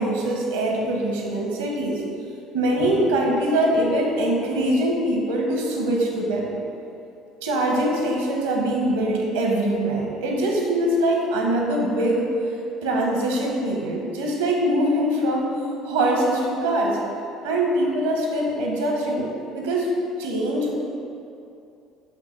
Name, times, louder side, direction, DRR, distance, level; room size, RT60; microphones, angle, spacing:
voice 1, 0.0-2.0 2.5-6.5 7.4-12.3 12.8-15.5 15.8-17.0 17.4-19.9 20.2-20.7, right 1 dB, 85° right, 0 dB, 1.1 m, -23 dB
7.2 x 3.3 x 5.4 m, 2.7 s
hypercardioid pair, 65°, 0 cm